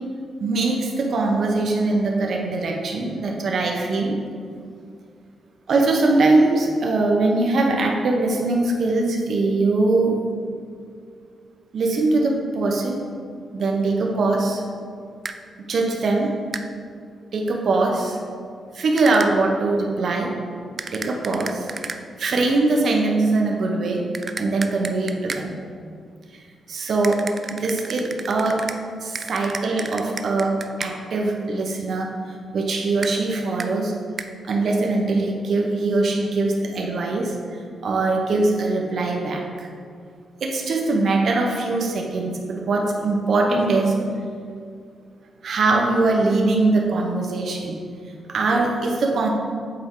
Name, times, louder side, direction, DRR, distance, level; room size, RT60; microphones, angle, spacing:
voice 1, 0.4-4.1 5.7-10.2 11.7-13.0 13.5-14.6 15.7-16.3 17.3-18.2 18.7-20.3 20.9-21.7 22.2-24.0 24.4-25.5 26.3-26.4 26.7-27.2 27.5-28.6 29.0-32.1 32.5-33.9 34.4-37.4 37.8-39.7 40.4-43.9 45.4-47.8 48.3-49.3, right 3 dB, 60° right, 0 dB, 0.9 m, -22 dB
sound 1, 15.2-15.4 16.5-16.7 19.0-19.3 20.8-22.0 24.1-25.5 27.0-28.8 29.1-30.9 33.0-33.1 33.6-33.7 34.2-34.3, right 4 dB, 40° right, 0.3 m, -33 dB
7.7 x 4.4 x 3.8 m, 2.2 s
cardioid pair, 95°, 0 cm